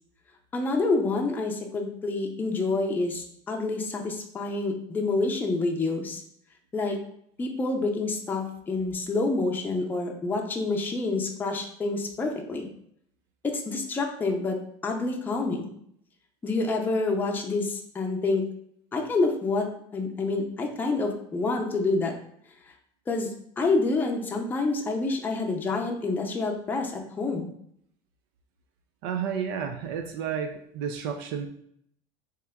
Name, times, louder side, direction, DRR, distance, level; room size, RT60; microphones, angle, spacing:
voice 1, 0.5-6.2 6.7-7.0 7.4-12.7 13.4-15.7 16.4-18.4 18.9-22.1 23.1-23.3 23.6-27.5, left 3 dB, 15° left, 1 dB, 0.5 m, -28 dB
voice 2, 29.0-31.5, right 7 dB, 80° right, 5 dB, 0.4 m, -31 dB
3.4 x 2.9 x 3.4 m, 0.69 s
cardioid pair, 130°, 12 cm